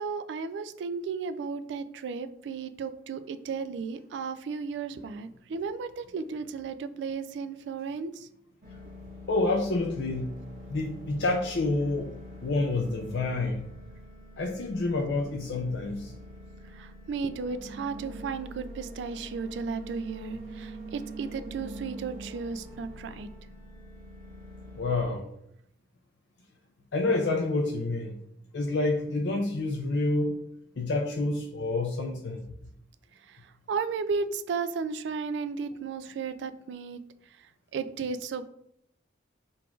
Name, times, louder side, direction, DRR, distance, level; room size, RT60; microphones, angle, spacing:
voice 1, 0.0-8.1 16.8-23.3 33.7-37.0 37.7-38.5, right 5 dB, 75° right, 11 dB, 0.3 m, -34 dB
sound 1, 8.6-25.1, equal, 45° right, 1.1 m, -44 dB
voice 2, 9.3-10.3 10.7-12.1 12.4-13.7 14.4-16.1 24.8-25.3 26.9-28.2 28.5-30.4 30.8-32.4, left 2 dB, 70° left, 1 dB, 0.4 m, -28 dB
3.9 x 2.4 x 4.5 m, 0.73 s
head